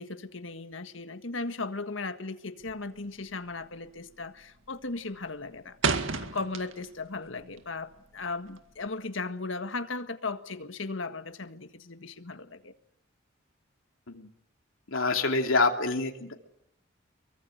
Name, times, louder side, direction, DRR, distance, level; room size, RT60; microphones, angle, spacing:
voice 1, 0.0-12.7, left 3 dB, 70° left, 9 dB, 1.7 m, -37 dB
sound 1, 2.6-3.0 3.3-3.6 4.0-4.4 4.7-7.1 7.4-8.9, right 4 dB, 80° right, 2.0 m, -32 dB
voice 2, 14.9-16.3, left 3 dB, 90° left, 4 dB, 2.9 m, -26 dB
24.5 x 23.0 x 9.3 m, 0.73 s
head